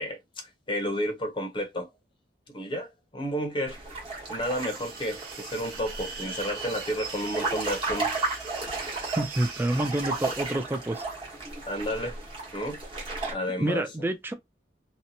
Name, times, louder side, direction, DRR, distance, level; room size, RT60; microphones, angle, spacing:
voice 1, 0.0-1.9 2.5-3.8 4.3-8.2 11.7-12.2 12.5-12.8 13.3-13.8, equal, 30° left, 0.6 m, -31 dB
sound 1, 3.7-13.3, right 3 dB, 30° right, 1.1 m, -34 dB
sound 2, 4.4-10.6, right 5 dB, 60° right, 0.9 m, -41 dB
voice 2, 9.2-11.0 13.2-13.3 13.6-14.3, right 1 dB, 10° right, 0.3 m, -28 dB
2.7 x 2.2 x 2.7 m
head